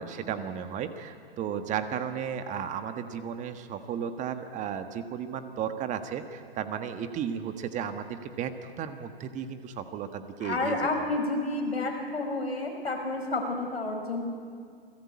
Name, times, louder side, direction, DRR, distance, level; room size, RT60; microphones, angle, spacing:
voice 1, 0.0-11.1, right 8 dB, 25° right, 8 dB, 1.5 m, -34 dB
voice 2, 10.4-14.2, left 2 dB, 85° left, 2 dB, 5.4 m, -30 dB
28.5 x 18.5 x 8.7 m, 2.1 s
hypercardioid pair, 120°, 31 cm